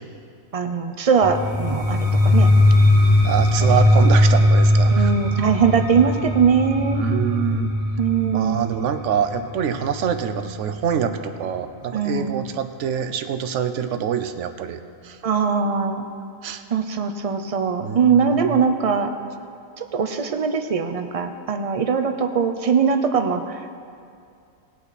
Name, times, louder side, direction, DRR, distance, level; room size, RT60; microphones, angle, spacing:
voice 1, 0.5-2.5 3.9-4.0 4.9-7.0 8.0-8.7 11.9-12.4 15.2-16.0 16.7-19.1 19.8-23.8, right 6 dB, 50° right, 7 dB, 0.4 m, -21 dB
sound 1, 1.2-11.0, left 1 dB, 40° left, 2.8 m, -19 dB
voice 2, 3.2-5.1 6.9-7.7 8.3-15.2 16.4-16.6 17.8-18.7, right 8 dB, 65° right, 9 dB, 1.0 m, -25 dB
19.5 x 8.5 x 4.1 m, 2.4 s
omnidirectional pair, 1.4 m